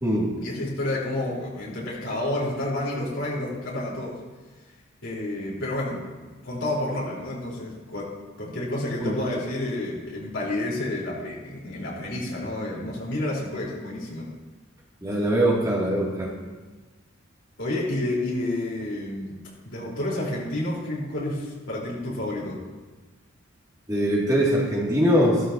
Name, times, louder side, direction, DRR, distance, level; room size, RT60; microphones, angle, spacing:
voice 1, 0.4-4.2 5.0-14.3 17.6-19.3 19.6-22.6, left 1 dB, 65° left, -5 dB, 4.3 m, -30 dB
voice 2, 15.0-16.3 23.9-25.4, equal, 20° right, -5 dB, 2.6 m, -22 dB
17.0 x 13.0 x 2.9 m, 1.3 s
head